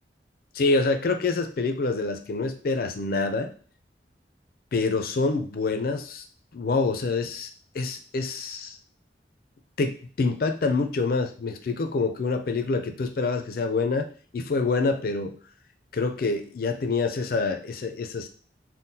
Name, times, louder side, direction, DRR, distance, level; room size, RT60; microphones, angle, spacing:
voice 1, 0.5-3.5 4.7-6.2 6.5-7.5 7.7-8.8 9.8-14.1 14.3-15.3 15.9-18.3, left 3 dB, 55° left, 6 dB, 0.4 m, -26 dB
3.6 x 2.1 x 2.7 m, 0.42 s
head